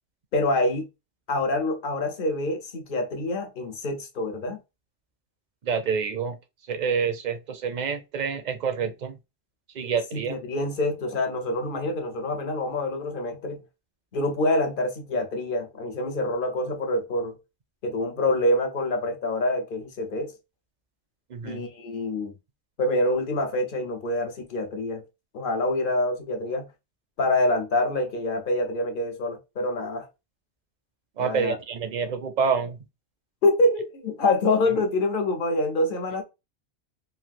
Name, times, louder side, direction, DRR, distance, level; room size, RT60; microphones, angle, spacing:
voice 1, 0.3-0.9 1.3-4.6 10.1-13.6 14.1-17.4 17.8-20.3 21.4-22.3 22.8-25.0 25.3-26.7 27.2-30.1 31.2-31.6 33.4-36.2, left 2 dB, 55° left, 0.8 m, -26 dB
voice 2, 5.6-6.4 6.7-9.2 9.7-10.4 21.3-21.7 31.2-32.8, right 6 dB, 50° right, 0.6 m, -27 dB
3.2 x 2.5 x 2.5 m
omnidirectional pair, 1.1 m